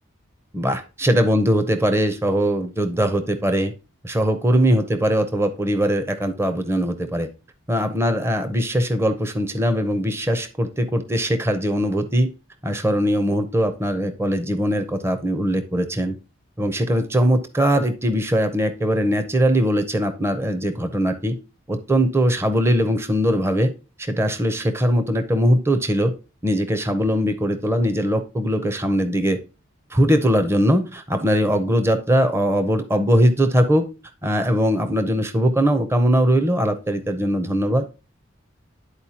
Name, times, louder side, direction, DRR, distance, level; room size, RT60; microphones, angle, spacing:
voice 1, 0.5-3.7 4.0-7.3 7.7-12.3 12.6-16.2 16.6-21.4 21.7-23.7 24.0-26.1 26.4-29.4 29.9-33.9 34.2-37.8, equal, 15° right, 9 dB, 0.6 m, -21 dB
11.0 x 4.3 x 2.8 m, 0.31 s
head